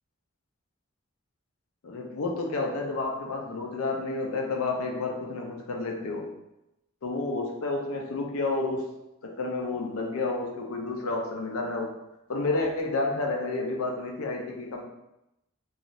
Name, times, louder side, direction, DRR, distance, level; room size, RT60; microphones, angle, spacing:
voice 1, 1.8-6.3 7.0-8.9 9.2-12.0 12.3-14.8, left 3 dB, 90° left, 1 dB, 0.5 m, -30 dB
2.6 x 2.3 x 3.0 m, 0.90 s
head